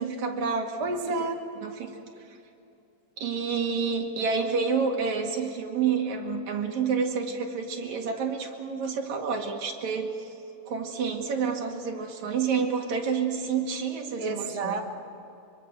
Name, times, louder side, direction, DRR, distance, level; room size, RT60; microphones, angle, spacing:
voice 1, 0.0-0.8 1.6-1.9 3.2-10.3 10.7-14.8, right 5 dB, 65° right, 2 dB, 3.3 m, -29 dB
voice 2, 0.8-1.4 14.2-14.8, right 3 dB, 45° right, 3 dB, 0.4 m, -30 dB
24.5 x 23.5 x 6.3 m, 2.8 s
omnidirectional pair, 3.6 m